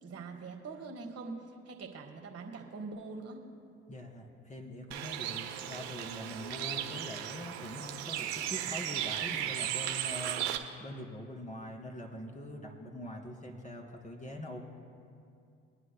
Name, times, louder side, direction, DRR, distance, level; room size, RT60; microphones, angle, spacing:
voice 1, 0.0-1.4 1.6-3.4, right 4 dB, 50° right, 2 dB, 1.7 m, -43 dB
voice 2, 3.9-14.6, left 1 dB, 25° left, 1 dB, 2.5 m, -43 dB
Bird, 4.9-10.6, right 11 dB, 85° right, 0.8 m, -36 dB
24.5 x 9.8 x 2.3 m, 2.4 s
hypercardioid pair, 60°, 32 cm